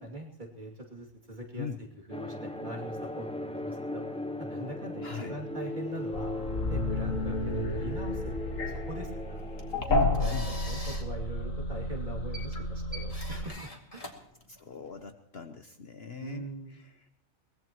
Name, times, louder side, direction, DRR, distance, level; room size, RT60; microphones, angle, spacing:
voice 1, 0.0-1.7 2.1-4.1 4.4-9.4 9.9-14.2 16.2-16.8, right 1 dB, 35° right, 0 dB, 2.9 m, -42 dB
sound 1, 2.1-9.8, left 1 dB, 10° left, 0.4 m, -38 dB
voice 2, 5.0-5.4 9.9-10.5 14.5-17.1, left 6 dB, 50° left, 7 dB, 1.1 m, -40 dB
sound 2, 6.1-13.4, left 1 dB, 70° left, 2.0 m, -31 dB
sound 3, 9.4-15.0, left 1 dB, 25° left, 2.3 m, -46 dB
23.0 x 19.0 x 3.0 m, 0.78 s
omnidirectional pair, 1.5 m